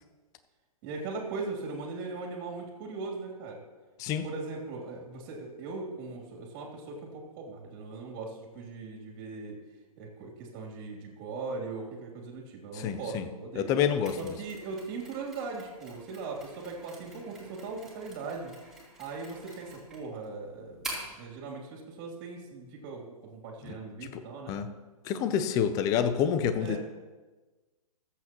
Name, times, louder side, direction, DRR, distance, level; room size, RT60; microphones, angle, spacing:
voice 1, 0.8-3.6 4.2-9.6 10.0-13.7 14.2-18.5 19.0-20.8 21.2-24.6 26.6-26.8, right 3 dB, 30° right, 0 dB, 2.9 m, -39 dB
voice 2, 12.7-13.2 13.6-14.2 23.7-23.8 24.5-24.7 25.1-26.8, left 8 dB, 20° left, 10 dB, 0.5 m, -27 dB
Mechanisms, 14.0-21.2, right 2 dB, ahead, 3.7 m, -46 dB
25.0 x 8.4 x 3.0 m, 1.3 s
hypercardioid pair, 145°, 19 cm